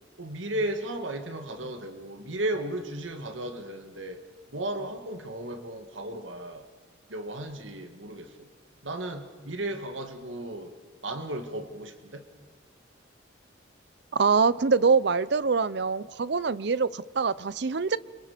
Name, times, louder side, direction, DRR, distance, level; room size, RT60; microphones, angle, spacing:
voice 1, 0.2-4.2 4.5-6.6 7.1-8.5 8.8-10.7 11.0-12.2, right 1 dB, 80° right, 7 dB, 1.8 m, -35 dB
voice 2, 14.1-18.0, right 5 dB, 60° right, 18 dB, 0.6 m, -24 dB
29.0 x 24.0 x 5.1 m, 1.4 s
head